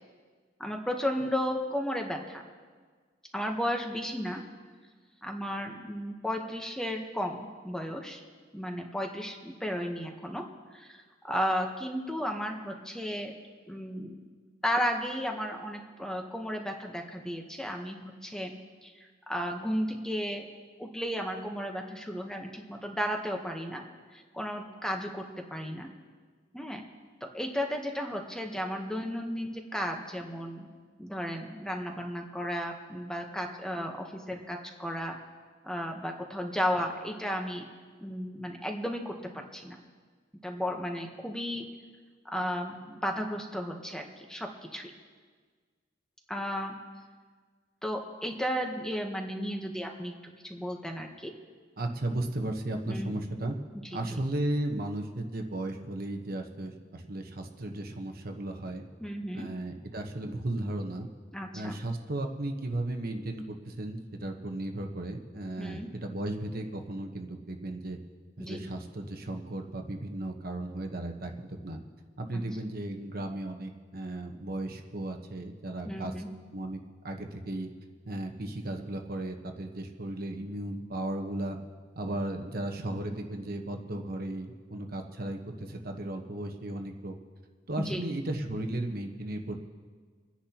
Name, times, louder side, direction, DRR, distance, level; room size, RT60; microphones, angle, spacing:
voice 1, 0.6-2.4 3.3-4.4 5.2-8.2 8.5-10.4 10.7-13.3 13.7-14.2 14.6-18.5 18.8-20.4 20.8-23.8 24.1-25.9 26.5-26.8 27.3-30.7 31.0-35.2 35.6-37.6 38.0-39.8 40.4-41.7 42.3-44.9 46.3-46.7 47.8-51.3 52.9-53.2 59.0-59.5 61.3-61.8 65.6-65.9 68.4-68.6 72.3-72.4 75.8-76.3 87.8-88.0, equal, 5° left, 2 dB, 1.0 m, -34 dB
voice 2, 51.8-53.6 53.9-58.8 59.3-61.1 61.5-68.0 68.4-71.8 72.2-76.1 76.5-76.8 77.0-77.7 78.1-81.6 82.0-87.1 87.7-89.6, right 1 dB, 50° right, 4 dB, 1.2 m, -35 dB
29.0 x 10.0 x 3.0 m, 1.6 s
head